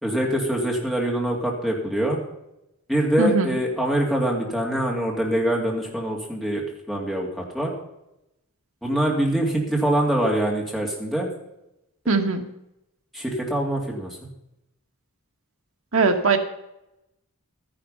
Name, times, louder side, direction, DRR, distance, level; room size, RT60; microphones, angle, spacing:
voice 1, 0.0-2.2 2.9-6.6 6.9-7.7 8.8-11.3 13.1-14.1, right 1 dB, ahead, -3 dB, 2.8 m, -24 dB
voice 2, 3.2-3.6 12.1-12.5 15.9-16.4, right 3 dB, 65° right, 5 dB, 1.4 m, -20 dB
13.0 x 10.5 x 5.6 m, 0.87 s
head